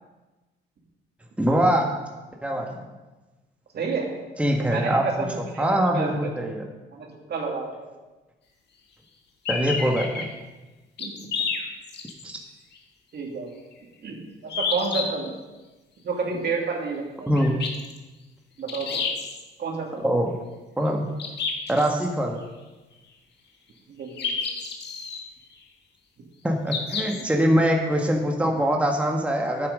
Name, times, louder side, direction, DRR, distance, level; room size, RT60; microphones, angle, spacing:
voice 1, 1.4-1.9 2.4-2.7 4.4-5.3 5.6-6.7 9.5-10.3 12.2-12.3 17.3-17.5 20.0-20.3 20.8-21.1 21.7-22.4 26.4-29.7, equal, 5° right, 1 dB, 1.3 m, -23 dB
voice 2, 3.7-4.1 4.6-5.7 5.9-6.3 6.9-7.9 11.0-11.1 13.1-13.5 14.0-14.2 14.4-15.3 16.0-17.3 18.6-19.0 19.6-20.1 23.9-24.3 27.1-27.2, right 4 dB, 55° right, 1 dB, 2.3 m, -30 dB
sound 1, 9.4-10.2 11.0-12.3 12.7-12.8 14.5-15.0 17.4-18.0 18.7-19.4 21.2-22.0 24.2-25.2 26.7-27.3, left 5 dB, 60° left, 1.7 m, -29 dB
10.0 x 8.1 x 5.3 m, 1.2 s
cardioid pair, 90°, 20 cm